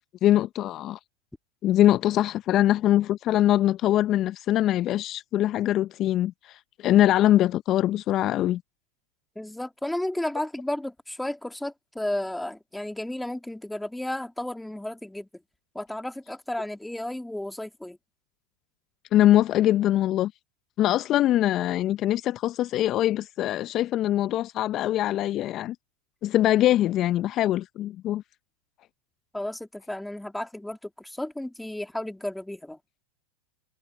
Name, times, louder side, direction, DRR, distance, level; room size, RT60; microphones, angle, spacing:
voice 1, 0.2-1.0 1.6-8.6 19.1-20.3 20.8-25.8 26.2-28.2, left 13 dB, 40° left, 0.7 m, -23 dB
voice 2, 9.4-15.3 15.7-18.0 29.3-32.8, left 1 dB, 5° left, 2.6 m, -33 dB
hypercardioid pair, 95°, 0 cm